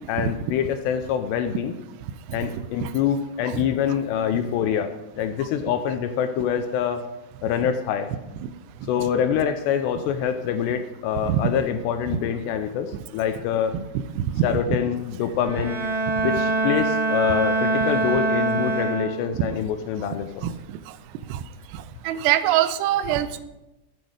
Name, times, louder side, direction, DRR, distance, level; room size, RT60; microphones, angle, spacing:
voice 1, 0.1-1.7 2.3-7.1 7.4-8.1 8.9-13.8 14.4-15.8 16.2-20.5, left 8 dB, 80° left, 8 dB, 2.6 m, -25 dB
Bowed string instrument, 15.4-19.5, right 2 dB, 40° right, 2.9 m, -24 dB
voice 2, 22.1-23.4, right 12 dB, 85° right, 10 dB, 2.5 m, -22 dB
13.5 x 8.0 x 4.9 m, 0.96 s
omnidirectional pair, 5.3 m